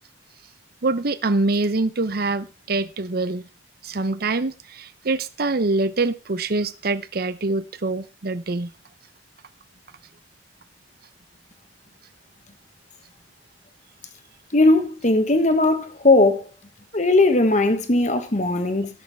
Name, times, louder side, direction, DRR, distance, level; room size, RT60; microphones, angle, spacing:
voice 1, 0.8-3.4 3.8-8.7, right 3 dB, 55° right, 0.8 m, -24 dB
voice 2, 14.5-16.5 16.9-18.9, left 2 dB, 40° left, 1.4 m, -18 dB
18.0 x 6.5 x 3.5 m
head